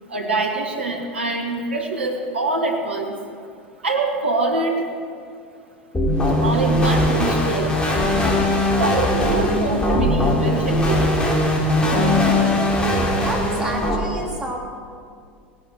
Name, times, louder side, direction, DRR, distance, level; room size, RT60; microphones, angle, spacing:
voice 1, 0.1-3.1 3.8-4.8 6.4-7.8 8.8-11.1, right 3 dB, 85° right, 3 dB, 1.8 m, -24 dB
sound 1, 5.9-14.0, left 1 dB, 15° left, 3.5 m, -20 dB
voice 2, 12.3-14.6, right 1 dB, 10° right, -2 dB, 3.4 m, -31 dB
17.5 x 11.5 x 6.4 m, 2.2 s
figure-of-eight pair, 80°, 6 cm